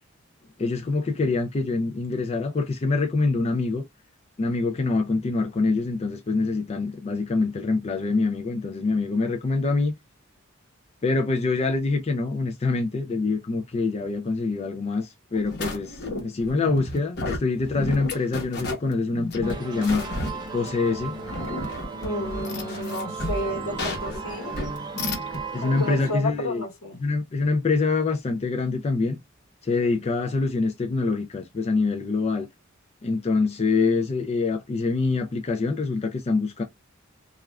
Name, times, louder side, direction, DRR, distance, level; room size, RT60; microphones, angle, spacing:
voice 1, 0.6-3.8 4.4-9.9 11.0-20.1 20.5-21.2 25.5-26.6 27.0-29.2 29.6-32.5 33.0-36.6, left 3 dB, 30° left, 0.4 m, -25 dB
sound 1, 15.3-25.4, left 1 dB, 50° left, 1.0 m, -32 dB
sound 2, 19.4-26.1, right 3 dB, 20° right, 0.7 m, -35 dB
voice 2, 22.0-24.6 25.6-27.0, left 1 dB, 80° left, 1.1 m, -32 dB
3.2 x 2.4 x 2.3 m
head